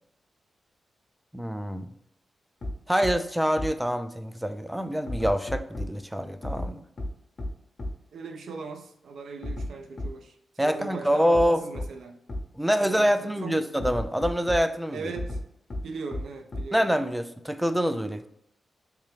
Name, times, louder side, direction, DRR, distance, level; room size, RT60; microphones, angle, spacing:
voice 1, 1.3-1.9 2.9-6.8 10.6-11.6 12.6-15.1 16.7-18.3, equal, 5° right, 10 dB, 0.4 m, -26 dB
sound 1, 2.6-2.7 3.0-3.1 3.6-3.7 5.1-5.8 6.4-6.7 7.0-7.1 7.4-7.5 7.8-7.9 9.4-9.7 10.0-10.1 11.3-11.4 11.7-11.8 12.3-12.4 13.8-14.6 15.2-15.4 15.7-15.8 16.1-16.2 16.5-16.6, left 1 dB, 55° left, 0.8 m, -32 dB
voice 2, 8.1-12.2 12.8-13.6 14.9-15.4 15.8-16.9, right 4 dB, 75° right, 5 dB, 0.5 m, -39 dB
3.4 x 3.0 x 3.2 m, 0.75 s
cardioid pair, 50°, 0 cm